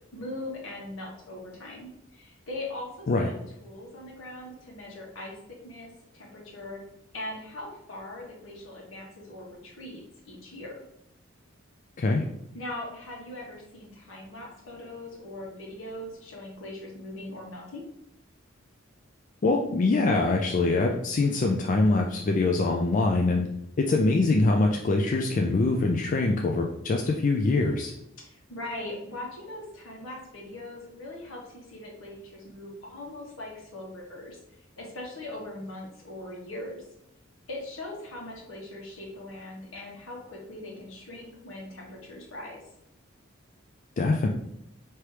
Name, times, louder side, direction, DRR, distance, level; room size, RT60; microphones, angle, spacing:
voice 1, 0.1-3.3 3.6-5.4 5.6-5.9 6.1-6.8 7.1-10.7 12.5-17.8 28.2-34.4 34.8-36.8 37.5-42.6, left 1 dB, 75° left, -2 dB, 1.3 m, -40 dB
voice 2, 19.4-23.5 23.8-27.9 44.0-44.3, left 3 dB, 40° left, 1 dB, 0.3 m, -24 dB
4.7 x 2.9 x 3.2 m, 0.78 s
head